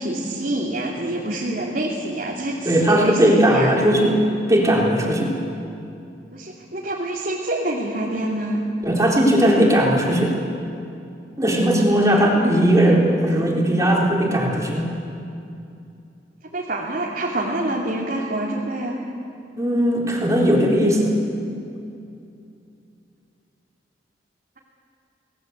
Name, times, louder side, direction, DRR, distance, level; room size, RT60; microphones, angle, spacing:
voice 1, 0.0-3.7 6.3-8.6 16.5-19.0, right 1 dB, 50° right, -4 dB, 2.9 m, -26 dB
voice 2, 2.6-4.2 4.5-5.3 8.8-10.4 11.4-14.9 19.6-21.1, equal, 20° right, -3 dB, 4.2 m, -18 dB
29.0 x 20.0 x 8.3 m, 2.6 s
head